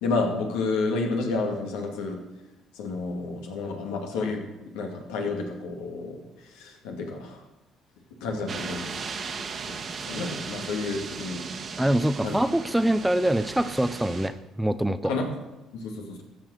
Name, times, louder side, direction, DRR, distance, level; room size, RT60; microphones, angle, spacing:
voice 1, 0.0-2.2 2.7-4.4 4.7-6.2 6.5-7.4 8.2-8.9 9.7-9.8 10.1-11.4 12.2-12.4 15.0-15.3 15.7-16.2, left 3 dB, 90° left, 1 dB, 2.3 m, -30 dB
sound 1, 8.5-14.3, right 5 dB, 50° right, 1.4 m, -37 dB
voice 2, 11.8-15.1, right 1 dB, 5° right, 13 dB, 0.6 m, -24 dB
14.0 x 6.0 x 6.5 m, 1.0 s
supercardioid pair, 80°, 0 cm